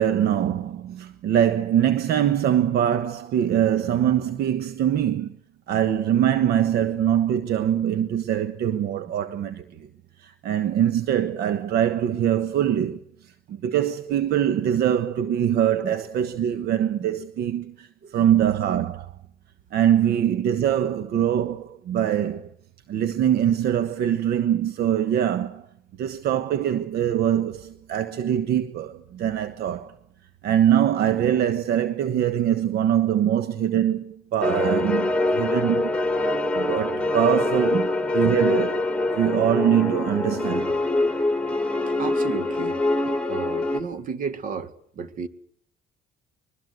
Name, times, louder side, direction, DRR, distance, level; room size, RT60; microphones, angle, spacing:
voice 1, 0.0-5.4 5.7-9.9 10.2-19.1 19.7-22.5 22.9-25.7 26.0-29.9 30.4-35.9 36.5-37.8 38.1-38.9 39.1-40.7, right 10 dB, 70° right, 1.3 m, -23 dB
sound 1, 34.4-43.8, left 2 dB, 5° left, 2.2 m, -24 dB
voice 2, 41.9-42.8 43.1-45.3, right 5 dB, 55° right, 2.0 m, -33 dB
22.5 x 22.0 x 8.1 m
cardioid pair, 110°, 17 cm